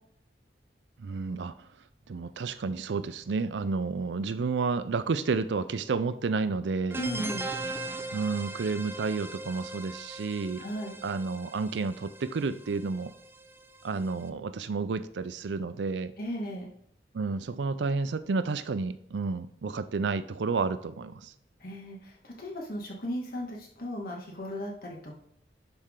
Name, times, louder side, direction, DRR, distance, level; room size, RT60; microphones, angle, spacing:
voice 1, 1.0-1.7 2.1-7.0 8.1-10.6 11.0-13.1 13.8-16.1 17.1-21.3, right 4 dB, 80° right, 14 dB, 0.5 m, -31 dB
voice 2, 6.9-7.5 10.6-10.9 16.2-16.7 21.6-25.1, equal, 55° left, -1 dB, 1.8 m, -36 dB
sound 1, 6.9-14.2, right 2 dB, 15° right, 0.5 m, -40 dB
11.5 x 4.3 x 3.8 m, 0.73 s
head